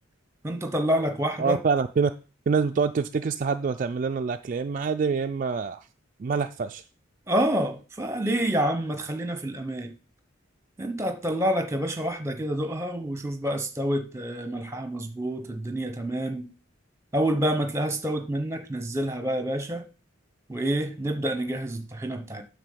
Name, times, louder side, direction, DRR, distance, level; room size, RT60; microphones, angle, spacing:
voice 1, 0.4-1.6 7.3-9.9 10.8-16.5 17.1-19.8 20.5-22.4, right 1 dB, 15° right, 0.9 m, -28 dB
voice 2, 1.4-2.1 2.5-5.9 6.2-6.8, right 5 dB, 40° right, 0.3 m, -26 dB
9.1 x 3.5 x 6.8 m
head